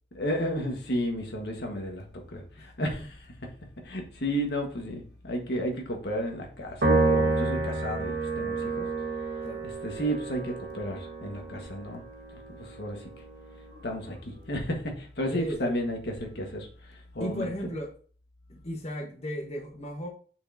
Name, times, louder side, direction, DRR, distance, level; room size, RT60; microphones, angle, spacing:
voice 1, 0.1-3.3 3.8-8.9 9.6-12.0 12.6-13.0 13.8-17.5, equal, 65° left, 1.6 m, -33 dB
Piano, 6.8-13.4, right 3 dB, 75° right, 2.0 m, -29 dB
voice 2, 15.3-15.8 17.2-17.9 18.5-20.1, equal, 40° left, 1.2 m, -35 dB
6.4 x 6.0 x 2.8 m
head